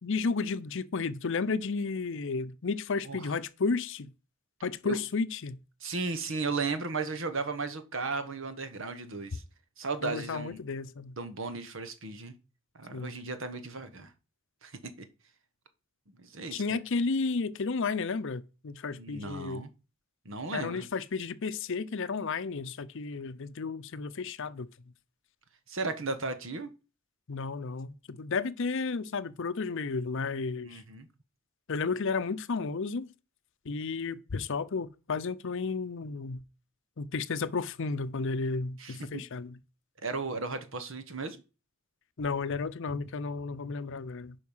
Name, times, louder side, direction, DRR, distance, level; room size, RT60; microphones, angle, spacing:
voice 1, 0.0-4.1 4.6-5.6 10.0-11.2 12.9-13.1 16.5-19.7 20.5-24.7 27.3-30.8 31.7-33.1 33.7-36.4 37.0-39.6 42.2-44.4, left 4 dB, 60° left, 0.6 m, -32 dB
voice 2, 5.8-9.4 9.8-10.6 11.2-12.3 12.7-14.1 14.6-14.7 15.0-15.1 16.2-16.6 19.0-19.7 20.2-20.8 25.7-26.7 30.6-31.1 38.8-39.2 40.0-41.4, right 3 dB, 65° right, 1.3 m, -35 dB
9.5 x 5.3 x 5.5 m
head